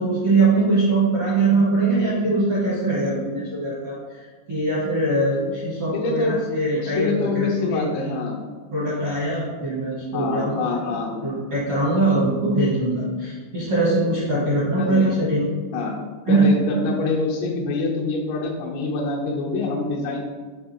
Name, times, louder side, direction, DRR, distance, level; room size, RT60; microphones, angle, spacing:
voice 1, 0.0-8.2 8.7-10.9 11.2-15.5 16.3-16.5, right 2 dB, 60° right, -10 dB, 1.4 m, -22 dB
voice 2, 5.9-6.4 6.8-8.4 10.1-11.2 14.8-15.1 15.7-16.0 16.3-20.2, left 4 dB, 85° left, -1 dB, 3.7 m, -25 dB
8.0 x 3.4 x 4.4 m, 1.5 s
omnidirectional pair, 5.7 m